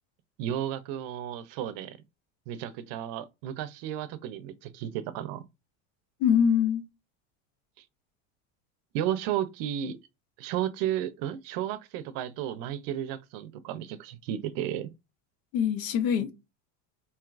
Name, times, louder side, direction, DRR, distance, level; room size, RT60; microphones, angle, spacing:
voice 1, 0.4-2.0 2.5-5.4 8.9-10.0 10.4-14.9, right 11 dB, 60° right, 0.6 m, -33 dB
voice 2, 6.2-6.8 15.5-16.3, left 8 dB, 85° left, 0.8 m, -24 dB
4.5 x 2.9 x 2.4 m
supercardioid pair, 130°, 37 cm